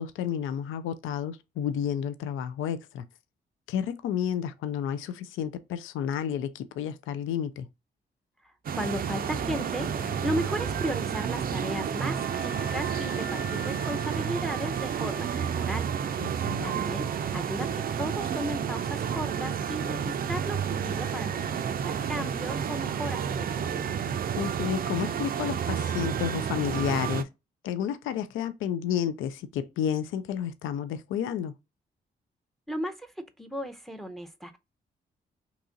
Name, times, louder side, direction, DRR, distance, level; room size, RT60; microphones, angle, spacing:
voice 1, 0.0-3.0 3.7-7.7 16.2-16.7 24.4-27.3 27.6-31.5, left 9 dB, 70° left, 0.4 m, -31 dB
sound 1, 8.6-27.2, right 8 dB, 45° right, 0.4 m, -30 dB
voice 2, 8.7-15.9 16.6-23.9 32.7-34.6, equal, ahead, 0.7 m, -35 dB
sound 2, 9.2-24.7, equal, 30° left, 1.1 m, -48 dB
Wind instrument woodwind instrument, 9.7-17.1, left 4 dB, 50° left, 0.9 m, -48 dB
2.9 x 2.4 x 3.7 m
supercardioid pair, 50°, 21 cm